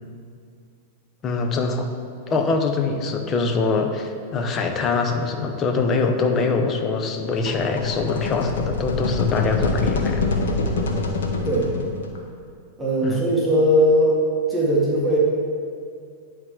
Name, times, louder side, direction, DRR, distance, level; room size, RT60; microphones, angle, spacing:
voice 1, 1.2-1.9 2.3-10.2 13.0-13.2, left 4 dB, 30° left, 5 dB, 0.8 m, -23 dB
sound 1, 7.3-12.2, left 3 dB, 85° left, 1.0 m, -25 dB
voice 2, 12.8-14.2 14.5-15.2, equal, ahead, -7 dB, 1.6 m, -19 dB
10.5 x 3.8 x 4.8 m, 2.2 s
hypercardioid pair, 120°, 0 cm